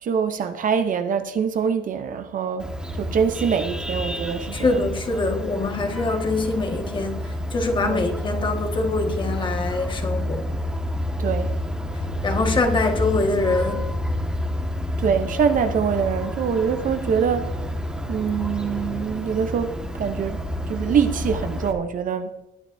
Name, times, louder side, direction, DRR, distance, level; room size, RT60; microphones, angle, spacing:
voice 1, 0.0-2.7 3.0-4.8 7.8-8.1 11.2-11.5 15.0-17.5 18.1-20.4 20.7-22.3, right 7 dB, 40° right, 0.7 m, -24 dB
Vehicle horn car horn honking, 2.6-21.7, left 1 dB, 5° right, 1.6 m, -29 dB
voice 2, 4.5-10.5 12.2-13.9, left 3 dB, 25° left, 1.6 m, -24 dB
20.5 x 10.5 x 2.7 m
cardioid pair, 170°, 21 cm